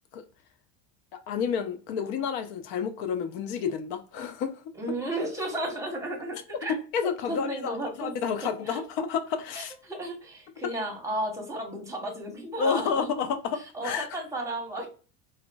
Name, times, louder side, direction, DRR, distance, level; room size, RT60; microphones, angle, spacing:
voice 1, 1.1-4.7 6.7-9.7 12.6-14.1, left 6 dB, 65° left, 0.6 m, -30 dB
voice 2, 4.8-6.7 7.3-8.1 8.4-8.8 9.5-13.1 13.7-14.9, right 1 dB, 10° right, 0.8 m, -34 dB
3.7 x 2.1 x 2.2 m
supercardioid pair, 120°, 39 cm